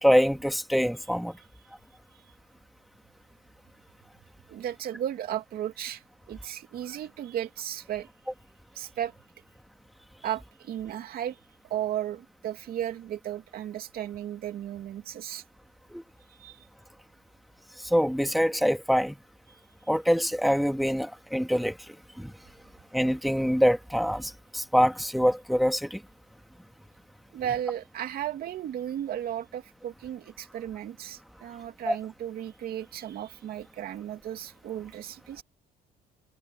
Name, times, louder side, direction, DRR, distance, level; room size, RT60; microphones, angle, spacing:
voice 1, 0.0-1.3 15.9-16.0 17.9-19.2 19.9-21.7 22.2-22.3 22.9-26.0 31.9-32.0, equal, ahead, 2.1 m, -24 dB
voice 2, 4.5-8.1 8.7-9.1 10.2-11.4 11.7-15.4 16.3-16.7 19.5-19.6 27.3-35.4, right 11 dB, 65° right, 2.5 m, -35 dB
cardioid pair, 110°, 17 cm